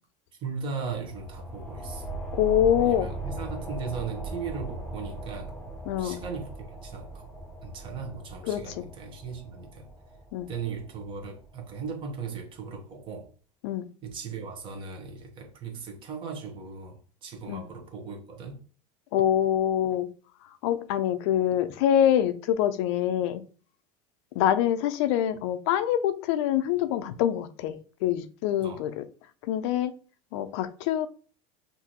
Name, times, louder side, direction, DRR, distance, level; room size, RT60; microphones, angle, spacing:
voice 1, 0.4-2.1 2.8-5.6 6.0-7.2 7.6-9.9 10.5-13.3 14.0-18.6 28.6-28.9, right 5 dB, 35° right, 1.1 m, -38 dB
sound 1, 0.8-12.0, right 3 dB, 10° left, 0.7 m, -39 dB
voice 2, 2.3-3.1 5.9-6.2 8.4-8.8 10.3-10.5 13.6-13.9 17.5-17.6 19.1-20.1 20.6-23.4 24.4-29.0 29.4-29.9 30.3-31.1, left 10 dB, 65° left, 0.5 m, -25 dB
5.8 x 2.7 x 2.9 m
supercardioid pair, 150°, 15 cm